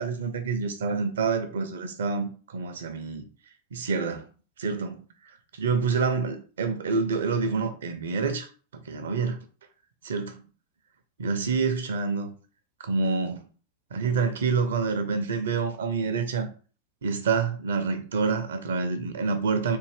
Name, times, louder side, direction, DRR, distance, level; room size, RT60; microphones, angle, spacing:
voice 1, 0.0-3.2 3.7-4.2 4.6-5.0 5.5-8.5 8.7-9.4 10.0-10.4 11.2-12.3 12.8-13.4 13.9-16.5 17.0-19.8, right 4 dB, 65° right, 0.6 m, -27 dB
3.6 x 2.5 x 3.3 m
figure-of-eight pair, 90°, 0 cm